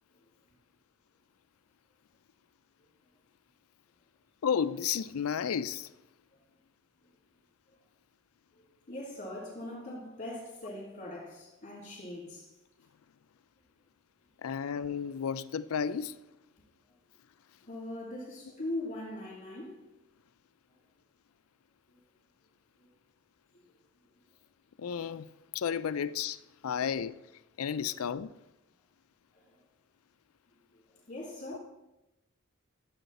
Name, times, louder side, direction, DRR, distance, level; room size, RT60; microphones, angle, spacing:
voice 1, 4.4-5.9 14.4-16.2 24.8-25.3 25.5-27.2 27.6-28.3 31.5-31.6, left 7 dB, 90° left, 0.4 m, -32 dB
voice 2, 8.9-12.5 17.6-19.8 29.3-29.4 31.1-31.6, left 1 dB, 35° left, 3.2 m, -40 dB
13.0 x 7.9 x 4.2 m
head